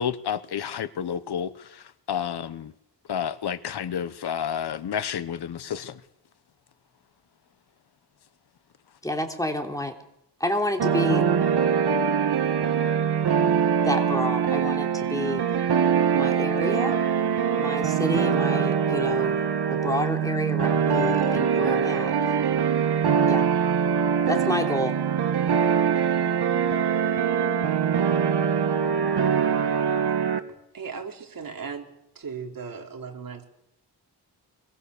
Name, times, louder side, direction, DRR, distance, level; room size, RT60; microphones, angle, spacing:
voice 1, 0.0-2.7 3.1-6.0, left 8 dB, 75° left, 1.2 m, -30 dB
voice 2, 9.0-9.9 10.4-11.3 13.8-15.4 16.1-16.9 17.6-19.3 19.7-22.2 23.3-23.5 24.3-24.9, left 1 dB, 10° left, 3.3 m, -29 dB
sound 1, 10.8-30.4, right 7 dB, 75° right, 2.0 m, -23 dB
voice 3, 30.7-33.4, right 6 dB, 55° right, 3.9 m, -37 dB
25.0 x 22.5 x 7.0 m
wide cardioid pair, 120°, 40 cm